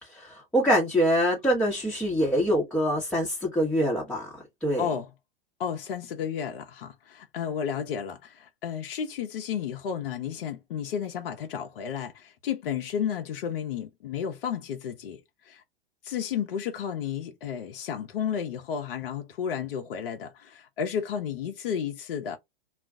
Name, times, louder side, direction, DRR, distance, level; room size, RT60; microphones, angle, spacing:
voice 1, 0.0-4.3 4.6-4.9, equal, 5° left, 1.0 m, -25 dB
voice 2, 4.8-5.1 5.6-15.2 15.4-15.6 16.0-22.4, left 8 dB, 60° left, 0.7 m, -32 dB
2.4 x 2.2 x 3.5 m
hypercardioid pair, 110°, 31 cm